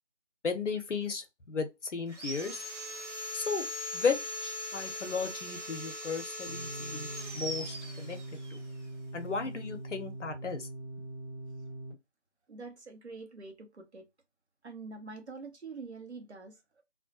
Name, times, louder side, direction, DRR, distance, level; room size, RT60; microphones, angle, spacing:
voice 1, 0.4-2.6 3.3-3.7 3.9-7.1 7.3-8.2 8.5-8.6 9.1-10.7, left 5 dB, 85° left, 0.6 m, -35 dB
Sawing, 2.1-8.6, left 1 dB, 90° right, 1.1 m, -40 dB
sound 1, 6.5-11.9, right 1 dB, 35° right, 1.0 m, -42 dB
voice 2, 12.5-14.1 14.6-16.8, right 4 dB, 65° right, 0.8 m, -45 dB
2.3 x 2.1 x 2.7 m
figure-of-eight pair, 165°, 35 cm